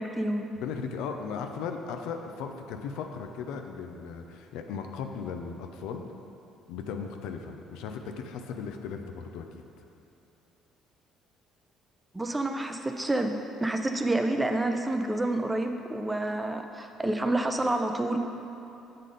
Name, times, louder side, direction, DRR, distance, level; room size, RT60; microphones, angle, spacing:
voice 1, 0.0-0.5 12.1-18.2, right 1 dB, 15° right, 5 dB, 0.5 m, -28 dB
voice 2, 0.6-6.0 6.7-9.7, left 6 dB, 80° left, 5 dB, 0.4 m, -37 dB
6.6 x 3.8 x 5.0 m, 2.9 s
supercardioid pair, 70°, 0 cm